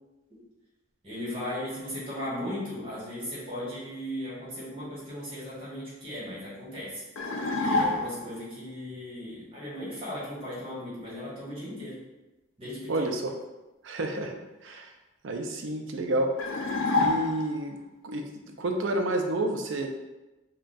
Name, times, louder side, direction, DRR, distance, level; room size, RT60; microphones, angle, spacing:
voice 1, 1.0-7.0 7.6-12.0 12.6-13.1, left 1 dB, 30° right, -8 dB, 1.4 m, -37 dB
sound 1, 7.2-8.3 16.4-17.7, left 2 dB, 80° left, 0.5 m, -27 dB
voice 2, 12.9-13.3 13.8-14.4 14.6-14.9 15.2-16.3 16.9-17.8 18.0-18.2 18.6-19.9, right 1 dB, 75° right, 3 dB, 0.5 m, -29 dB
3.3 x 2.3 x 3.9 m, 1.0 s
head